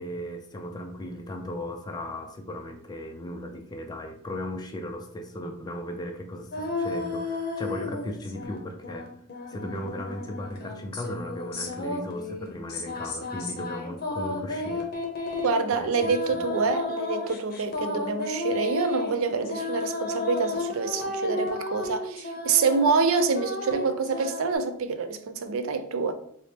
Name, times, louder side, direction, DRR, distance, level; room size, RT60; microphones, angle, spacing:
voice 1, 0.0-9.1 9.5-14.9 15.7-16.1, left 1 dB, 20° left, 0.3 m, -36 dB
sound 1, 6.5-8.6 8.8-24.6, left 2 dB, 45° left, 0.7 m, -33 dB
voice 2, 15.4-26.1, right 4 dB, 70° right, 0.4 m, -26 dB
3.4 x 2.0 x 4.1 m
head